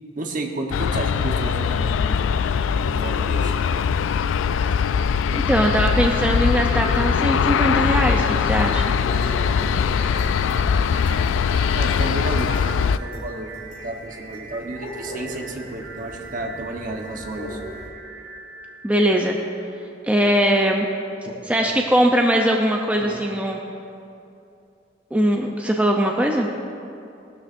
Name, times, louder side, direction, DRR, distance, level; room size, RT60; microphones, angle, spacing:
voice 1, 0.2-2.3 2.9-3.6 11.7-12.5 13.0-17.6 21.2-21.8 23.0-23.3, right 2 dB, 45° right, 2 dB, 1.2 m, -32 dB
Aircraft, 0.7-13.0, left 6 dB, 90° left, 0.3 m, -21 dB
voice 2, 5.3-8.9 18.8-19.4 20.1-20.9 21.5-23.6 25.1-26.5, equal, 10° right, 0 dB, 0.6 m, -20 dB
sound 1, 8.2-20.1, right 3 dB, 70° right, 2.3 m, -41 dB
sound 2, 9.0-17.9, equal, 60° left, 3.4 m, -39 dB
18.5 x 12.5 x 2.6 m, 2.6 s
head